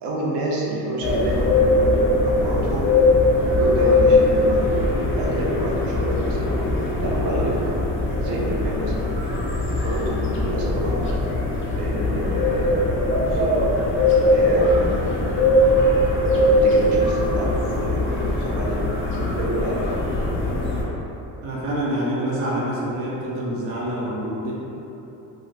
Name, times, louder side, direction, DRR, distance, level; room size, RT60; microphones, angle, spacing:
voice 1, 0.0-2.9 3.4-7.8 8.2-9.1 9.6-11.0 11.7-13.9 14.3-15.2 15.9-18.8 19.4-20.3, right 1 dB, 70° right, -3 dB, 0.7 m, -28 dB
sound 1, 1.0-20.8, left 1 dB, 30° left, 0.4 m, -21 dB
voice 2, 21.4-24.5, right 1 dB, 35° right, -5 dB, 0.4 m, -26 dB
2.6 x 2.5 x 3.2 m, 3.0 s
cardioid pair, 150°, 43 cm